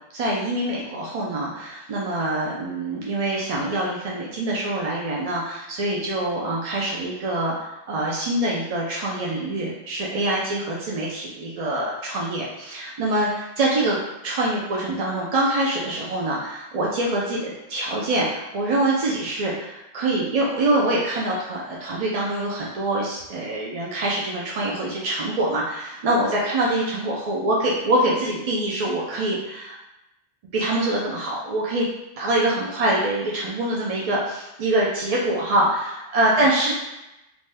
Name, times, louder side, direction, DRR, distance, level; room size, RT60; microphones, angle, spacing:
voice 1, 0.1-14.0 14.2-29.8 30.5-31.9 32.2-36.7, right 1 dB, 65° right, -4 dB, 0.3 m, -24 dB
2.6 x 2.2 x 3.2 m, 0.91 s
omnidirectional pair, 1.1 m